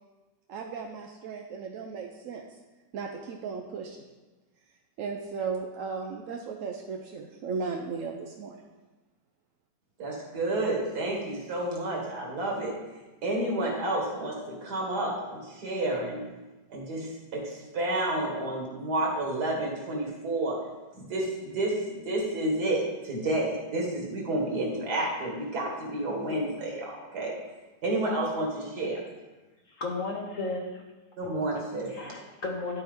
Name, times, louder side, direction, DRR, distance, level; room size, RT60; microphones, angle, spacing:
voice 1, 0.5-2.5 2.9-4.0 5.0-8.6, right 5 dB, 80° right, 2 dB, 0.7 m, -36 dB
voice 2, 10.0-16.2 16.7-20.6 20.9-27.3 27.8-29.0 31.2-31.9, right 1 dB, 60° right, -2 dB, 2.0 m, -30 dB
voice 3, 29.7-30.8 31.9-32.8, left 3 dB, 60° left, 1 dB, 0.9 m, -34 dB
11.5 x 4.3 x 3.5 m, 1.2 s
omnidirectional pair, 2.0 m